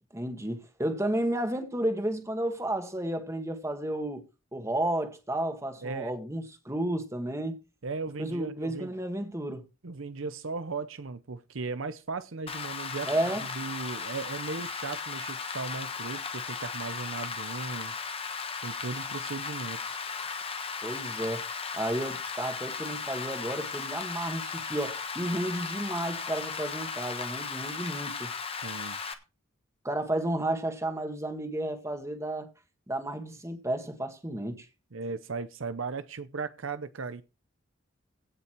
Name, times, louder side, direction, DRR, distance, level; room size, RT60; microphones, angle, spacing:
voice 1, 0.1-4.2 4.5-7.6 8.2-9.6 13.0-13.5 20.8-21.4 21.7-28.3 29.8-32.5 32.9-34.7, right 1 dB, 15° right, 1.8 m, -32 dB
voice 2, 5.8-6.1 7.8-8.9 9.8-13.1 13.5-17.9 18.6-20.0 28.6-29.2 34.9-37.2, right 4 dB, 65° right, 0.7 m, -37 dB
Rain, 12.5-29.1, left 5 dB, 25° left, 1.2 m, -36 dB
16.5 x 5.8 x 4.6 m
head